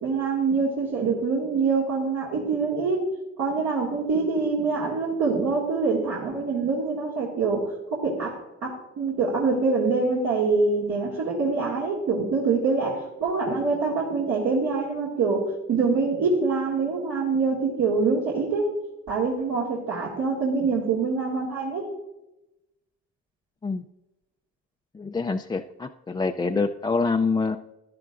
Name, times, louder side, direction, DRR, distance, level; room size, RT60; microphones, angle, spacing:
voice 1, 0.0-3.0 3.4-7.6 7.9-8.4 8.6-18.7 19.1-21.9, right 4 dB, 75° right, -5 dB, 2.0 m, -25 dB
voice 2, 24.9-27.6, left 4 dB, 15° left, 5 dB, 0.3 m, -26 dB
13.5 x 10.5 x 2.5 m, 0.97 s
cardioid pair, 90°, 30 cm